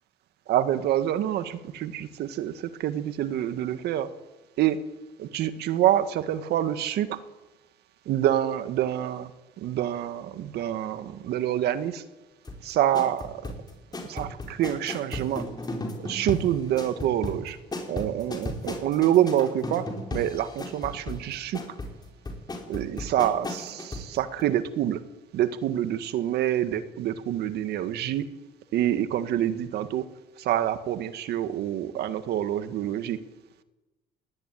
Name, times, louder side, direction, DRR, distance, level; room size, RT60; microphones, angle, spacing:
voice 1, 0.5-4.1 4.6-4.8 5.2-7.2 8.1-9.3 9.6-12.0 12.6-13.5 14.0-15.5 16.0-17.6 17.9-19.9 20.1-21.6 22.7-25.0 25.3-28.3 28.7-30.0 30.4-33.2, right 11 dB, 75° right, 10 dB, 1.8 m, -26 dB
sound 1, 12.4-24.1 24.4-24.5, left 2 dB, 25° left, 4.8 m, -35 dB
20.5 x 20.0 x 9.2 m, 1.1 s
cardioid pair, 110°, 17 cm